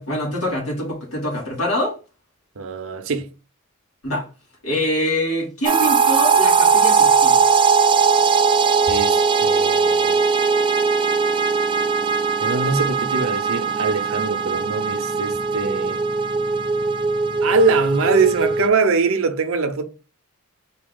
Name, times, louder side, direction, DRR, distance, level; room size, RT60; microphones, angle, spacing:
voice 1, 0.0-2.0 4.0-4.3 4.6-7.5, left 1 dB, 70° left, 2.6 m, -24 dB
voice 2, 2.6-3.3 8.9-10.3 12.4-16.0 17.4-19.8, right 4 dB, 60° right, 0.7 m, -22 dB
sound 1, 5.6-18.7, right 5 dB, 20° right, 0.3 m, -19 dB
4.3 x 2.8 x 3.8 m
head